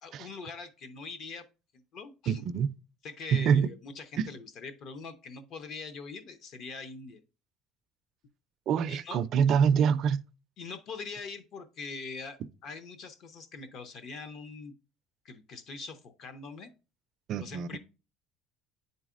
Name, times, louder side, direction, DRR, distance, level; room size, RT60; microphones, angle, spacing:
voice 1, 0.0-1.5 1.7-2.5 3.0-7.2 8.9-9.2 10.6-14.7 15.2-16.7 17.4-17.8, left 4 dB, 50° left, 0.7 m, -43 dB
voice 2, 2.3-2.7 3.3-3.7 4.2-4.3 8.7-10.2 17.3-17.8, right 7 dB, 45° right, 0.3 m, -25 dB
9.9 x 4.0 x 2.5 m
cardioid pair, 140°, 0 cm